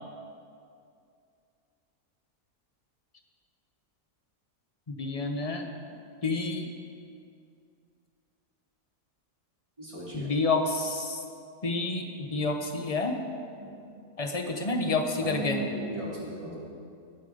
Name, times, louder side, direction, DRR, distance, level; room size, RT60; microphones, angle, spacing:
voice 1, 4.9-5.6 6.2-6.7 10.1-11.2 11.6-13.2 14.2-15.6, left 3 dB, 25° left, 3 dB, 1.1 m, -29 dB
voice 2, 9.8-10.3 13.6-13.7 15.2-16.5, equal, 20° right, -6 dB, 3.2 m, -36 dB
22.0 x 7.8 x 5.3 m, 2.4 s
omnidirectional pair, 1.7 m